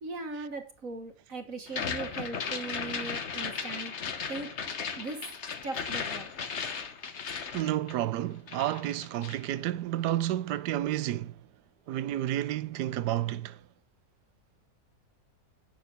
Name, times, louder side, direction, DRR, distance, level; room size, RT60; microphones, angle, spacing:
voice 1, 0.0-3.9 4.3-4.5 5.0-5.3 5.6-6.3, right 3 dB, 55° right, 1.7 m, -39 dB
sound 1, 1.7-8.2 8.5-9.5, left 6 dB, 50° left, 1.2 m, -36 dB
voice 2, 7.5-11.4 11.9-13.6, right 13 dB, 85° right, 1.2 m, -31 dB
8.9 x 6.7 x 6.7 m
omnidirectional pair, 1.7 m